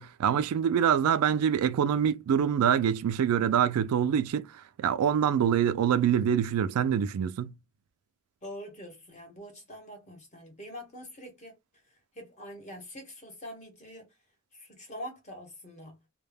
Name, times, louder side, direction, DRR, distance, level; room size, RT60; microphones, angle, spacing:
voice 1, 0.0-7.5, right 8 dB, 85° right, 0.3 m, -25 dB
voice 2, 8.4-11.6 11.9-14.1 14.5-16.0, equal, 30° left, 0.9 m, -44 dB
2.2 x 2.1 x 3.3 m
head